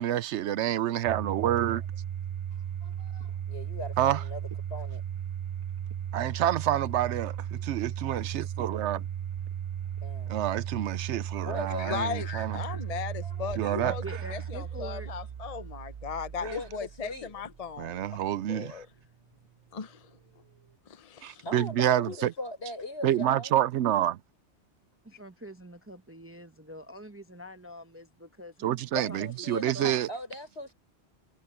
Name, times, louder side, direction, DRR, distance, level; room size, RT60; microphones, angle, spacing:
voice 1, 0.0-1.8 4.0-4.2 6.1-9.0 10.3-12.6 13.6-14.0 17.8-18.8 21.2-22.3 23.0-24.2 28.6-30.1, right 12 dB, 90° right, 0.9 m, -28 dB
Domestic sounds home sounds, 1.1-18.0, right 9 dB, 55° right, 0.3 m, -36 dB
voice 2, 2.8-5.0 10.0-10.4 11.4-12.0 12.9-13.6 16.4-17.3 21.4-23.5 28.9-30.7, left 1 dB, 65° left, 6.0 m, -39 dB
voice 3, 11.8-14.0 14.3-18.9 19.7-20.1 20.9-21.4, left 6 dB, 40° left, 0.6 m, -37 dB
voice 4, 13.8-15.1 25.0-28.8 29.1-29.5 29.7-30.0, equal, 15° right, 0.8 m, -44 dB
omnidirectional pair, 1.2 m